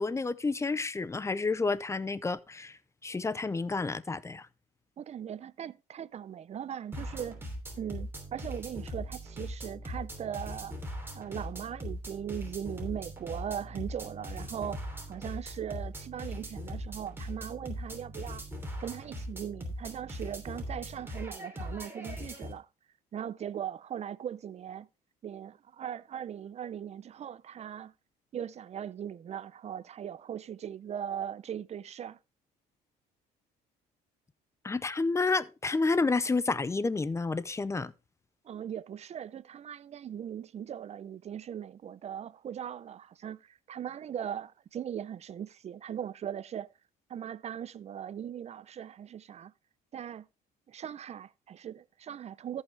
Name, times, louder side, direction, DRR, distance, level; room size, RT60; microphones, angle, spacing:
voice 1, 0.0-2.8 3.0-4.5 34.6-37.9, left 3 dB, 15° left, 0.6 m, -30 dB
voice 2, 5.0-7.4 7.8-10.8 11.1-18.5 18.8-22.7 23.1-24.9 25.2-27.9 28.3-32.2 38.4-46.7 47.1-49.5 49.9-50.3 50.7-52.6, right 9 dB, 40° right, 0.5 m, -39 dB
sound 1, 6.9-22.5, equal, 15° right, 2.9 m, -40 dB
14.0 x 5.6 x 3.3 m
supercardioid pair, 90°, 17 cm